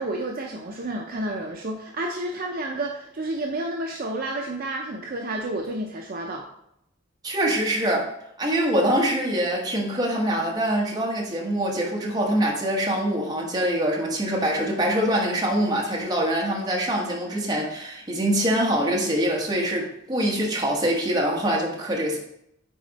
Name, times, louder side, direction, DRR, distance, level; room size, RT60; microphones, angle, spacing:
voice 1, 0.0-6.5, right 1 dB, 45° right, 1 dB, 0.5 m, -30 dB
voice 2, 7.2-8.1 8.4-22.2, right 1 dB, 20° right, -2 dB, 1.2 m, -24 dB
8.4 x 4.2 x 4.0 m, 0.78 s
head